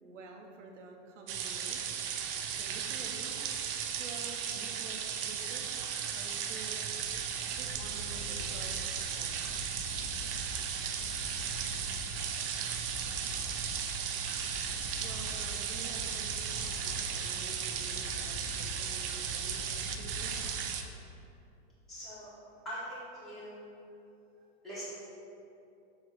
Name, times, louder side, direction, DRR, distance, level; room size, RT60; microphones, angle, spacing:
voice 1, 0.0-1.8 2.5-5.8 6.1-6.9 7.5-10.5 11.7-12.3 15.0-20.8, right 3 dB, 80° right, 1 dB, 1.1 m, -50 dB
sound 1, 1.3-20.8, right 8 dB, 50° right, 0.6 m, -36 dB
sound 2, 6.8-21.0, left 1 dB, 30° right, 0.9 m, -44 dB
voice 2, 21.9-22.3 22.6-23.5 24.6-24.8, equal, ahead, -13 dB, 1.3 m, -42 dB
7.1 x 3.0 x 5.8 m, 2.8 s
supercardioid pair, 165°, 36 cm